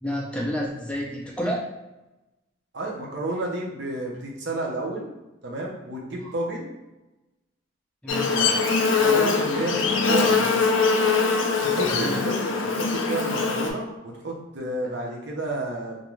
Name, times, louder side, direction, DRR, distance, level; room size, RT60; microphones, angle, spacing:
voice 1, 0.0-1.7 6.2-6.3 8.0-8.4 11.8-12.2, equal, 5° left, -2 dB, 0.4 m, -30 dB
voice 2, 2.7-5.1 5.4-6.7 8.4-8.5 9.0-10.5 11.6-12.3 12.8-16.0, right 2 dB, 60° right, -3 dB, 0.6 m, -30 dB
Buzz, 8.1-13.7, left 4 dB, 75° left, 0.4 m, -22 dB
2.5 x 2.2 x 3.0 m, 1.0 s
head